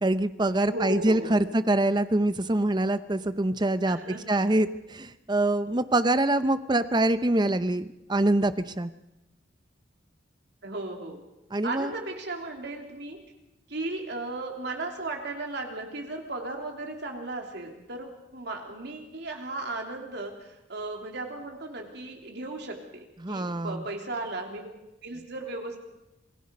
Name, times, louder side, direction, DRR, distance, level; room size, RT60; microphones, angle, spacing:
voice 1, 0.0-4.0 4.3-8.9 11.5-11.9 23.2-23.8, right 1 dB, 25° right, 13 dB, 0.7 m, -25 dB
voice 2, 0.6-1.5 3.9-4.6 10.6-11.2 11.6-13.2 13.7-24.7 25.0-25.8, right 2 dB, 60° right, 2 dB, 3.3 m, -36 dB
27.0 x 18.5 x 5.3 m, 0.93 s
head